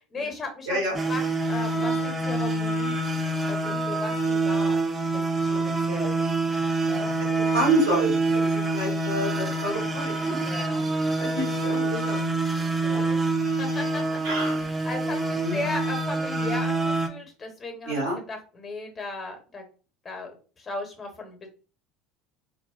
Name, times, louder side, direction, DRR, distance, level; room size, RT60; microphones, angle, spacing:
voice 1, 0.1-0.8 1.1-1.2 1.5-3.0 3.5-6.2 6.8-7.1 10.4-10.9 12.8-13.2 13.6-14.2 14.8-19.6 20.0-21.5, left 2 dB, 30° left, 4 dB, 0.9 m, -36 dB
sound 1, 0.9-17.1, right 2 dB, 20° right, 0.5 m, -26 dB
voice 2, 5.4-6.0 7.4-10.4 11.2-12.2 12.9-13.1 14.2-14.6 15.3-15.6 17.9-18.2, right 1 dB, 85° right, -6 dB, 1.3 m, -29 dB
2.6 x 2.0 x 2.4 m, 0.36 s
hypercardioid pair, 75°, 0 cm